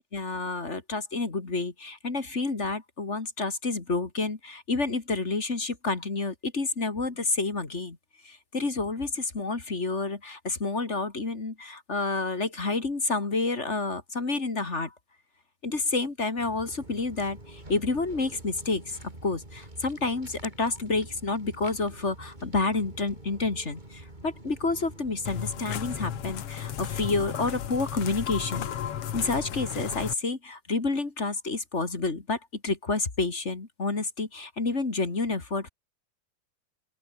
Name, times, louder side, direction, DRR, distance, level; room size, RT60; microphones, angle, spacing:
voice 1, 0.0-8.0 8.2-14.9 15.6-28.7 29.1-35.7, left 3 dB, 25° left, 2.3 m, -29 dB
Walk footsteps, 16.4-26.3, right 1 dB, 15° right, 4.9 m, -47 dB
sound 1, 25.3-30.2, left 10 dB, 55° left, 2.0 m, -34 dB
open air
omnidirectional pair, 3.8 m